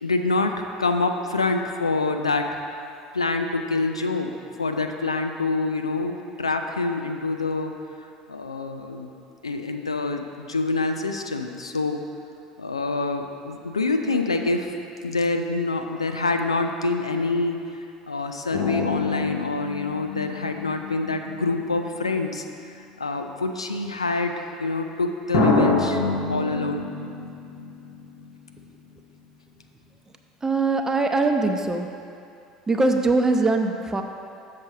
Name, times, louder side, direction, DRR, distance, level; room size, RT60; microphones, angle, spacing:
voice 1, 0.0-2.6 3.1-7.7 8.3-9.1 9.4-12.0 12.6-14.7 15.0-22.4 22.7-26.0 26.3-26.9, left 3 dB, 85° left, 5 dB, 0.4 m, -26 dB
sound 1, 18.5-22.4 23.3-23.4 25.3-28.7 28.9-29.0, left 3 dB, 65° left, 1.8 m, -27 dB
voice 2, 30.4-31.9 32.7-34.0, right 3 dB, 15° right, 4 dB, 0.7 m, -22 dB
7.1 x 6.5 x 4.1 m, 2.5 s
figure-of-eight pair, 70°, 3 cm